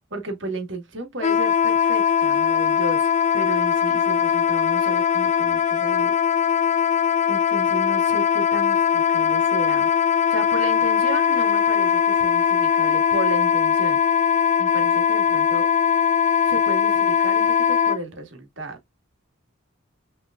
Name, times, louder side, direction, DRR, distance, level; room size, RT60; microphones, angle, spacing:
voice 1, 0.1-6.1 6.7-9.9 10.3-14.3 14.6-15.7 16.4-18.8, right 2 dB, 60° right, 1.7 m, -34 dB
Wind instrument woodwind instrument, 1.2-18.0, left 8 dB, 35° left, 0.5 m, -20 dB
6.0 x 3.5 x 2.4 m
head